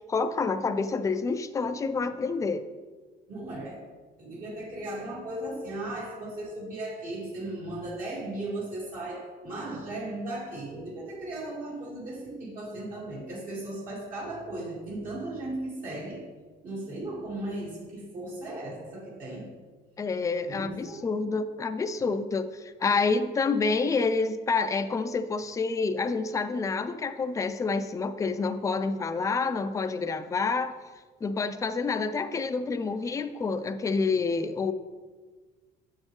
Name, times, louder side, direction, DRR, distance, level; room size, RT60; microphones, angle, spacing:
voice 1, 0.1-2.7 20.0-30.8 31.2-34.7, left 4 dB, 20° left, 10 dB, 0.4 m, -28 dB
voice 2, 3.3-3.8 4.2-16.2 16.6-19.5 20.5-21.1, right 1 dB, 55° right, -6 dB, 2.0 m, -36 dB
7.2 x 6.3 x 3.2 m, 1.4 s
cardioid pair, 110°, 17 cm